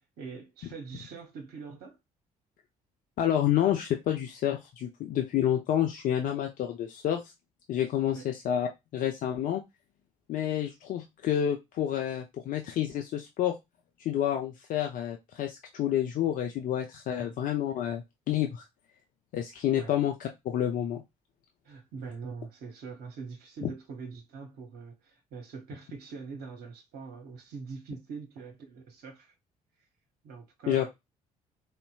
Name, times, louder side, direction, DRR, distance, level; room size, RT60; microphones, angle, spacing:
voice 1, 0.2-2.0 8.1-8.3 17.2-17.3 19.7-20.0 21.6-29.3 30.2-30.9, right 5 dB, 55° right, 0.8 m, -43 dB
voice 2, 3.2-7.3 7.7-9.6 10.3-13.5 14.0-18.6 19.3-21.0 30.7-30.9, left 10 dB, 45° left, 0.5 m, -29 dB
3.9 x 2.1 x 2.2 m
figure-of-eight pair, 45°, 19 cm